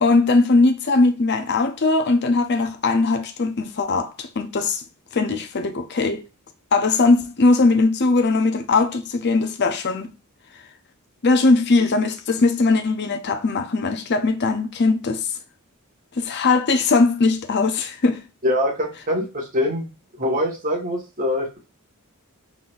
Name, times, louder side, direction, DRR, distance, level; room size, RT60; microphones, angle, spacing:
voice 1, 0.0-4.8 5.1-6.2 6.7-10.1 11.2-15.3 16.2-18.2, left 3 dB, 50° left, 0.6 m, -20 dB
voice 2, 18.4-19.9 20.2-21.6, left 1 dB, 40° right, 1.6 m, -23 dB
4.1 x 3.8 x 2.5 m
head